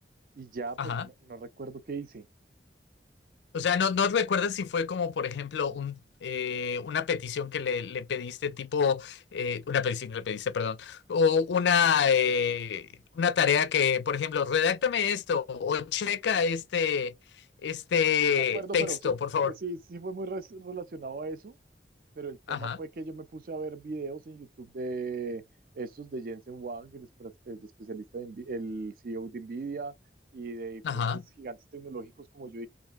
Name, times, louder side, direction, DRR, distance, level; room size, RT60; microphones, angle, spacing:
voice 1, 0.4-2.3 18.4-19.1 19.4-21.6 22.2-25.4 25.8-29.9 30.3-31.1 31.4-32.7, right 3 dB, 50° right, 0.4 m, -38 dB
voice 2, 3.5-12.9 13.1-17.1 17.6-19.5 22.5-22.8 30.8-31.2, left 7 dB, 75° left, 0.4 m, -27 dB
3.3 x 2.5 x 2.4 m
head